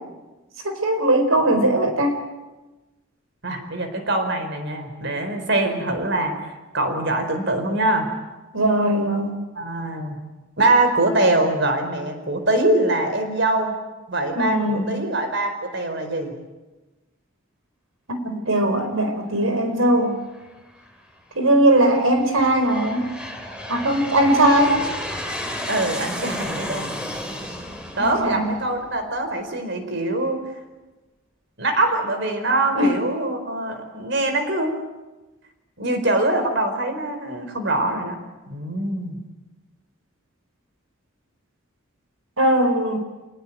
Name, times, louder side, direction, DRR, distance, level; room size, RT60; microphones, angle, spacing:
voice 1, 0.6-2.2 8.5-9.3 14.4-14.9 18.1-20.2 21.3-23.0 23.7-24.8 28.0-28.5 32.7-32.9 42.4-43.0, right 1 dB, 85° right, 7 dB, 4.6 m, -19 dB
voice 2, 3.4-6.3 6.7-8.1 9.5-10.2 10.6-13.8 14.1-16.3 25.7-26.9 28.0-30.4 31.6-34.7 35.8-38.2 38.5-39.2, right 2 dB, 60° right, 7 dB, 4.6 m, -23 dB
Aircraft, 20.3-20.9 21.6-29.2, left 1 dB, 5° right, 3.2 m, -33 dB
27.5 x 19.0 x 9.2 m, 1.1 s
head